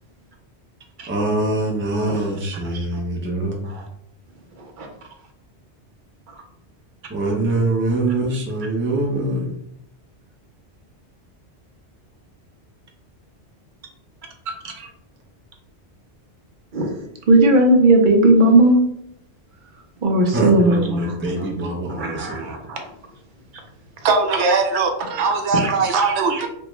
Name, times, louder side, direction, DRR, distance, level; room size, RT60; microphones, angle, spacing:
voice 1, 1.1-3.6 7.1-9.5 20.3-22.5, right 2 dB, 15° right, -1 dB, 0.4 m, -23 dB
voice 2, 17.3-18.8 20.0-21.1 22.0-22.8 25.5-26.5, right 2 dB, 50° right, 2 dB, 0.7 m, -17 dB
voice 3, 24.0-26.5, right 4 dB, 80° right, 5 dB, 0.9 m, -20 dB
3.5 x 2.2 x 3.0 m, 0.74 s
omnidirectional pair, 1.1 m